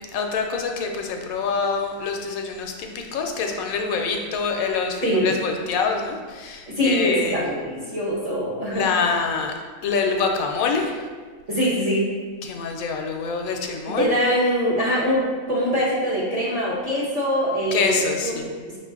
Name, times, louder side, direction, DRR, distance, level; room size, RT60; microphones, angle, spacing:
voice 1, 0.0-7.4 8.7-9.5 9.8-10.9 12.4-14.1 17.7-18.5, left 5 dB, 80° left, 3 dB, 1.0 m, -25 dB
voice 2, 5.0-5.3 6.7-8.9 11.5-12.1 13.9-18.8, equal, 30° right, -7 dB, 0.9 m, -23 dB
5.5 x 2.5 x 3.6 m, 1.5 s
omnidirectional pair, 1.5 m